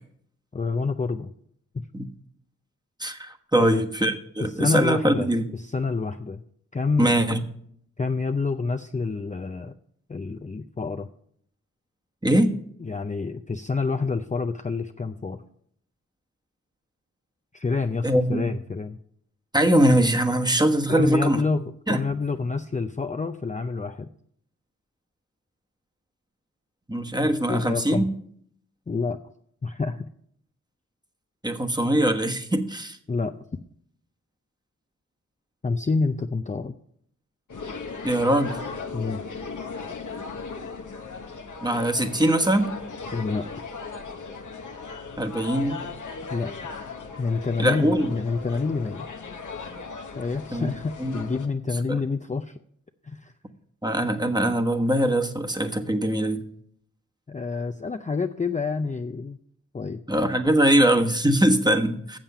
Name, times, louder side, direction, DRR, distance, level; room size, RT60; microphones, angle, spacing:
voice 1, 0.5-1.3 1.7-1.8 3.6-3.8 4.4-6.4 6.7-7.1 8.0-9.7 10.1-11.1 12.8-15.4 17.5-19.0 20.9-24.1 27.2-28.1 28.9-29.2 29.6-30.1 33.1-33.4 35.6-36.7 38.9-39.2 43.1-43.5 46.3-46.9 47.2-49.1 50.1-52.6 53.0-53.3 57.3-59.4 59.7-60.0, left 4 dB, 25° left, 6 dB, 0.5 m, -28 dB
voice 2, 3.0-5.5 7.0-7.4 12.2-12.5 18.0-18.4 19.5-21.4 21.9-22.0 26.9-28.1 31.4-33.0 38.0-38.6 41.6-42.7 45.2-45.8 47.6-48.1 50.5-50.7 51.0-51.1 51.9-52.0 53.8-56.4 60.1-62.2, right 1 dB, 15° right, 5 dB, 1.2 m, -22 dB
sound 1, 37.5-51.5, left 4 dB, 70° left, 1.1 m, -37 dB
7.5 x 7.2 x 6.9 m, 0.66 s
cardioid pair, 40°, 31 cm